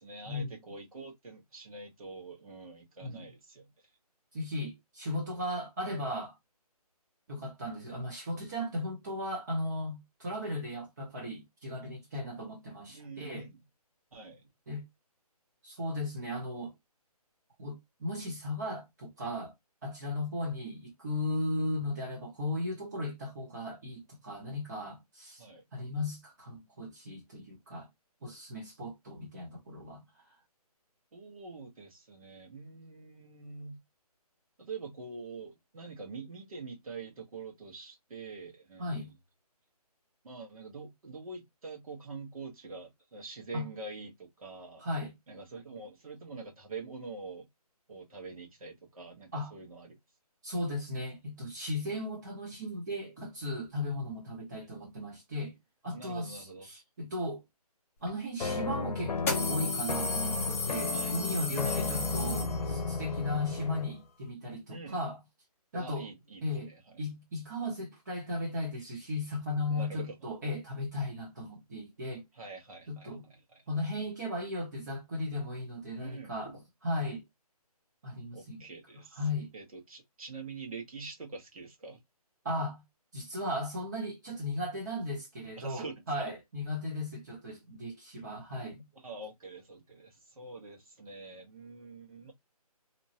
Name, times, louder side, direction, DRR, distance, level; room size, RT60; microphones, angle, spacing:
voice 1, 0.0-3.7 12.1-12.2 12.9-13.6 14.1-14.5 25.4-25.6 31.1-33.8 34.6-39.2 40.2-44.8 45.3-47.5 47.9-50.0 54.5-54.7 55.9-56.7 60.9-61.2 61.6-62.3 64.7-65.0 65.8-66.4 66.7-67.0 69.6-70.1 72.3-73.6 75.9-76.3 78.3-79.2 79.5-82.0 85.6-86.0 88.9-92.3, right 4 dB, 60° right, 1.3 m, -45 dB
voice 2, 4.3-6.3 7.3-13.5 14.7-14.8 15.6-16.7 17.6-19.5 19.8-25.4 25.7-27.9 28.2-30.0 38.8-39.1 43.5-43.7 44.8-45.1 49.3-49.6 50.4-55.6 55.8-57.4 58.0-65.2 65.7-66.1 66.4-66.7 67.0-72.2 72.9-73.2 73.7-77.2 78.0-78.6 79.2-79.5 82.4-82.8 83.1-88.9, left 1 dB, 30° right, 0.8 m, -36 dB
sound 1, 58.1-58.2 59.2-63.0, left 3 dB, 20° left, 0.6 m, -35 dB
sound 2, 58.4-64.0, left 4 dB, 85° left, 0.6 m, -34 dB
2.8 x 2.2 x 2.8 m
hypercardioid pair, 165°, 20 cm